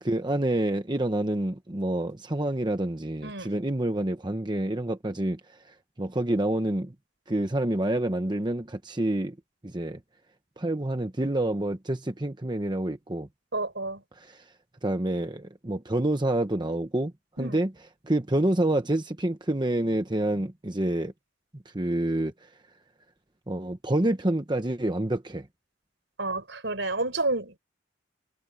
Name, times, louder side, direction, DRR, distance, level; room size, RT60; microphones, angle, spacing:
voice 1, 0.0-5.4 6.0-6.9 7.3-9.3 9.6-10.0 10.6-13.3 14.2-14.4 14.8-17.1 17.4-17.7 18.1-21.1 21.7-22.3 23.5-25.4, right 1 dB, 25° right, 1.0 m, -27 dB
voice 2, 13.5-14.0 17.4-17.6 26.2-27.6, right 2 dB, 70° right, 5.1 m, -30 dB
head